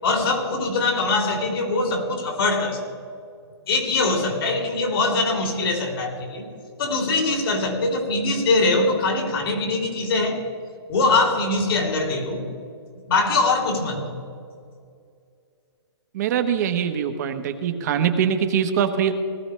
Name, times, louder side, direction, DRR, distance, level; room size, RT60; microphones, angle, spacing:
voice 1, 0.0-2.8 3.7-6.4 6.8-10.4 10.9-12.4 13.1-14.1, left 3 dB, 60° left, 1 dB, 3.2 m, -22 dB
voice 2, 16.1-19.1, right 8 dB, 40° right, 7 dB, 1.1 m, -23 dB
19.0 x 13.5 x 3.3 m, 2.3 s
hypercardioid pair, 165°, 14 cm